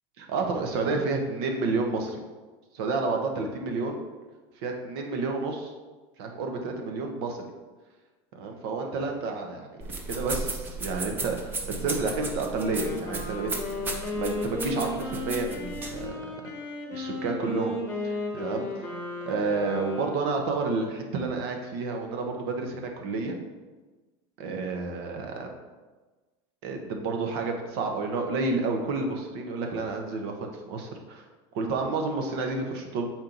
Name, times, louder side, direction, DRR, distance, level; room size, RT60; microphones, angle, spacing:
voice 1, 0.2-2.2 2.7-4.0 4.6-5.7 6.2-7.5 8.3-13.8 14.1-16.2 16.9-17.7 18.0-18.7 19.3-23.4 24.4-25.5 26.6-31.2 31.5-33.1, right 3 dB, 60° right, 3 dB, 1.0 m, -30 dB
sound 1, 9.8-16.1, right 3 dB, 15° right, 0.6 m, -35 dB
Wind instrument woodwind instrument, 12.4-20.4, left 2 dB, 20° left, 1.1 m, -35 dB
7.4 x 4.4 x 3.9 m, 1.3 s
cardioid pair, 175°, 15 cm